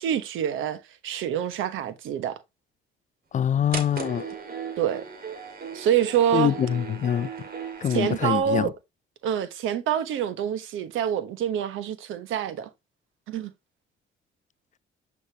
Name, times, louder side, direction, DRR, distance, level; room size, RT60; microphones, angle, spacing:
voice 1, 0.0-2.4 4.8-5.0 5.7-6.5 7.9-8.7 9.2-12.7 13.3-13.5, right 9 dB, 85° right, 1.1 m, -26 dB
voice 2, 3.3-4.3 6.3-7.3 7.8-8.7, left 9 dB, 40° left, 0.4 m, -24 dB
sound 1, 3.7-8.4, right 6 dB, 50° right, 2.2 m, -36 dB
8.3 x 5.3 x 2.8 m
cardioid pair, 90°, 20 cm